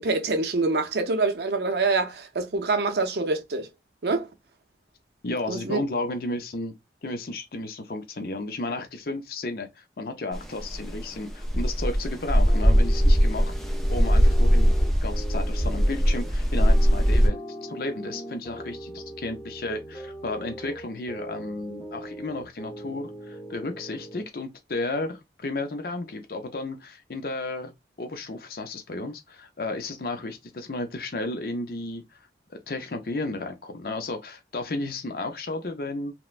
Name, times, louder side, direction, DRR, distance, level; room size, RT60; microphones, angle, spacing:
voice 1, 0.0-3.7 4.0-4.3 5.5-5.8, right 3 dB, 65° right, 0.6 m, -25 dB
voice 2, 5.2-6.7 7.0-13.5 13.9-14.7 15.0-27.7 28.0-32.0 32.5-36.1, left 2 dB, 55° left, 0.5 m, -33 dB
sound 1, 10.3-17.3, equal, ahead, 0.4 m, -21 dB
sound 2, 12.5-24.3, right 1 dB, 20° left, 0.8 m, -40 dB
3.0 x 2.1 x 2.4 m
head